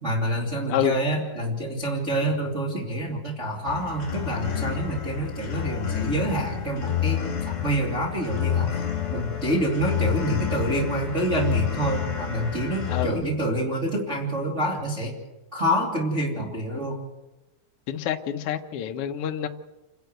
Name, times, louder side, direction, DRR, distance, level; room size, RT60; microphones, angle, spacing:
voice 1, 0.0-8.8 9.1-15.1 15.5-17.0, right 1 dB, 20° right, -3 dB, 2.6 m, -27 dB
sound 1, 3.7-13.1, left 10 dB, 40° left, 3.0 m, -29 dB
voice 2, 12.9-13.3 17.9-19.5, left 10 dB, 80° left, 5 dB, 1.3 m, -27 dB
28.5 x 11.5 x 8.0 m, 1.0 s
omnidirectional pair, 4.2 m